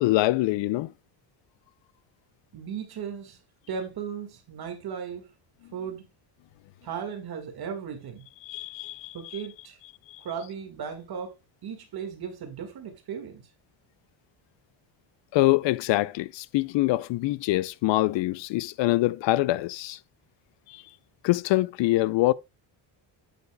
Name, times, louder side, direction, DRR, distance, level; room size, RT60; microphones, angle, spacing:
voice 1, 0.0-0.9 8.4-9.4 10.1-10.2 15.3-20.0 20.7-20.8 21.2-22.3, left 18 dB, 65° left, 0.5 m, -24 dB
voice 2, 2.5-3.4 3.7-5.3 5.7-6.1 6.8-8.3 9.1-9.8 10.2-11.3 11.6-13.5, right 7 dB, 50° right, 1.7 m, -36 dB
8.3 x 7.9 x 2.2 m
cardioid pair, 115°, 47 cm